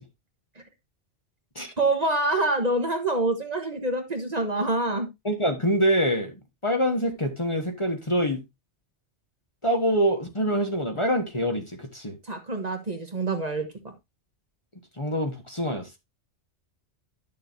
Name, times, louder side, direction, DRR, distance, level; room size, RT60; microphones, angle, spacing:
voice 1, 1.8-5.1 12.2-13.9, right 2 dB, 35° right, 1.3 m, -26 dB
voice 2, 5.2-8.4 9.6-12.2 15.0-16.0, equal, 25° left, 1.3 m, -25 dB
11.0 x 6.8 x 2.6 m
omnidirectional pair, 1.2 m